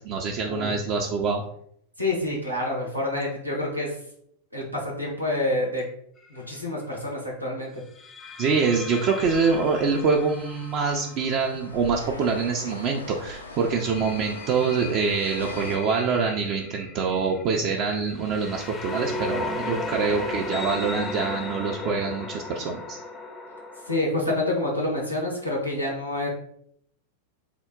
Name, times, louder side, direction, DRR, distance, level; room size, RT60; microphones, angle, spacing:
voice 1, 0.0-1.4 8.4-23.0, right 5 dB, 40° right, 0 dB, 0.4 m, -25 dB
voice 2, 2.0-3.9 4.5-5.8 6.3-7.7 23.9-26.3, left 1 dB, 90° right, -2 dB, 0.8 m, -27 dB
sound 1, 6.2-6.5 8.0-12.7 13.5-24.0, left 2 dB, 20° left, 0.5 m, -36 dB
sound 2, 9.2-15.8, left 2 dB, 80° left, 0.4 m, -41 dB
3.6 x 2.1 x 3.6 m, 0.68 s
figure-of-eight pair, 90°, 0 cm